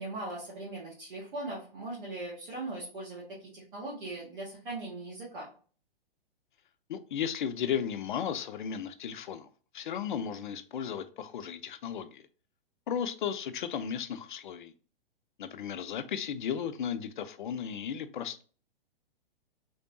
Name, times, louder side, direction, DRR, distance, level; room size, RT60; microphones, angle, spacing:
voice 1, 0.0-5.5, right 2 dB, 60° right, 1.7 m, -39 dB
voice 2, 6.9-9.5 9.7-12.3 12.9-14.7 15.4-18.4, left 8 dB, 55° left, 0.5 m, -35 dB
3.5 x 3.3 x 2.7 m
figure-of-eight pair, 115°, 29 cm